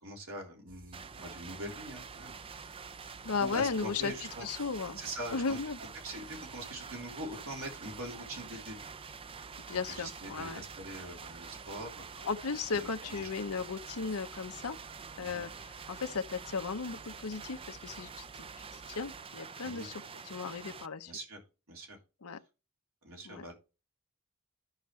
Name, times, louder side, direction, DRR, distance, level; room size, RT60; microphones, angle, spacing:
voice 1, 0.0-2.3 3.4-4.5 4.9-5.6 6.0-8.9 9.9-12.1 12.7-13.3 15.2-15.4 19.6-19.9 21.1-21.4 21.7-22.0 23.0-23.5, right 1 dB, 70° right, 3.3 m, -43 dB
sound 1, 0.7-19.3, right 3 dB, 40° right, 1.2 m, -57 dB
sound 2, 0.9-20.9, right 5 dB, 25° right, 0.4 m, -47 dB
voice 2, 3.2-4.1 4.4-5.0 5.3-5.8 9.6-10.6 12.2-14.8 15.2-21.1 22.2-22.4 23.3-23.4, left 5 dB, 85° left, 0.8 m, -36 dB
13.0 x 5.7 x 3.2 m
head